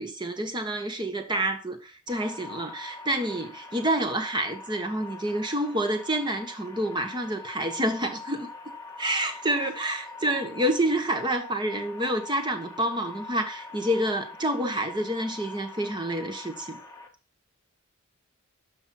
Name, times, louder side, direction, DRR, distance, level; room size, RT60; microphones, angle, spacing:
voice 1, 0.0-8.5 9.0-16.8, right 1 dB, 20° right, 1.3 m, -28 dB
sound 1, 2.1-17.1, left 3 dB, 15° left, 1.8 m, -43 dB
12.0 x 5.5 x 4.4 m
head